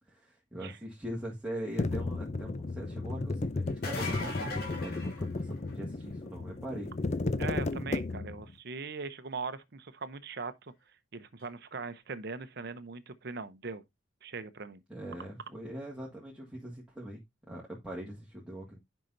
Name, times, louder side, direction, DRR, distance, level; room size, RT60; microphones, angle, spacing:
voice 1, 0.1-6.9 14.9-17.2 17.5-18.8, right 1 dB, 5° right, 1.8 m, -42 dB
sound 1, 1.8-8.5, left 2 dB, 35° left, 0.5 m, -34 dB
sound 2, 3.7-5.9 11.4-11.5 13.3-13.4, left 2 dB, 50° left, 2.3 m, -39 dB
voice 2, 7.4-10.7 11.1-13.8 14.2-14.8, right 4 dB, 55° right, 0.8 m, -40 dB
10.5 x 5.6 x 2.6 m
head